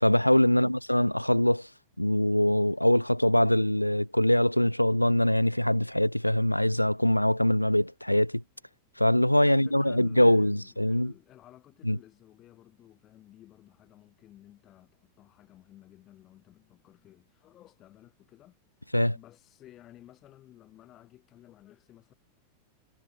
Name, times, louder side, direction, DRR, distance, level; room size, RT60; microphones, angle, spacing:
voice 1, 0.0-1.7 2.0-8.4 9.0-11.1 11.8-12.0 18.9-19.2, left 1 dB, 90° left, 0.3 m, -23 dB
voice 2, 9.4-22.1, left 13 dB, 35° left, 5.4 m, -54 dB
figure-of-eight pair, 90°, 0 cm